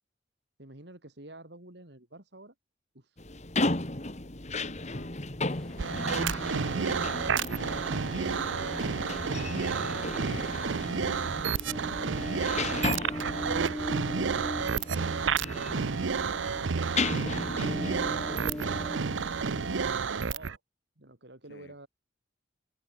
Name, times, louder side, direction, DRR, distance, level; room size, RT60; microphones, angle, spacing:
voice 1, 0.6-2.5 2.9-3.2 17.7-19.7 20.0-20.6 21.0-21.9, right 1 dB, 65° right, 3.2 m, -49 dB
sound 1, 3.2-19.8, left 2 dB, 35° left, 2.1 m, -36 dB
voice 2, 4.5-5.1 5.5-10.1 10.8-13.5 18.3-18.4 21.5-21.8, left 1 dB, 65° left, 4.2 m, -51 dB
Ocean, 5.5-19.0, equal, 5° left, 2.2 m, -43 dB
sound 2, 5.8-20.6, right 5 dB, 85° right, 0.7 m, -30 dB
head